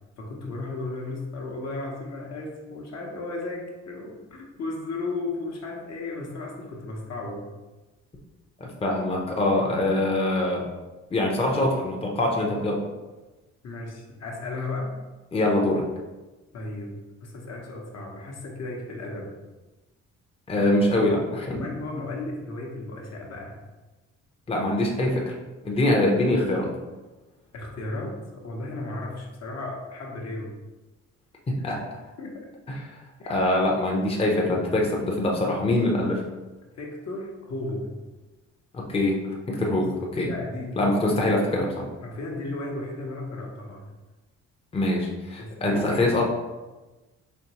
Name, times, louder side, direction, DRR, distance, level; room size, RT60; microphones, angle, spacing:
voice 1, 0.2-7.5 13.6-15.0 16.5-19.3 20.6-20.7 21.0-21.2 21.5-23.6 27.5-30.5 32.2-32.5 33.2-33.4 36.8-37.9 39.7-39.9 40.2-41.4 42.0-43.9 45.4-46.2, left 2 dB, 60° left, -1 dB, 0.9 m, -35 dB
voice 2, 8.6-10.6 11.1-12.8 15.3-15.8 20.5-21.6 24.5-25.3 25.6-26.7 31.5-31.8 32.7-32.8 33.3-36.2 38.7-39.9 40.2-40.3 40.8-41.9 44.7-46.2, left 1 dB, 20° left, -1 dB, 0.7 m, -24 dB
4.3 x 2.9 x 2.9 m, 1.2 s
cardioid pair, 90°, 30 cm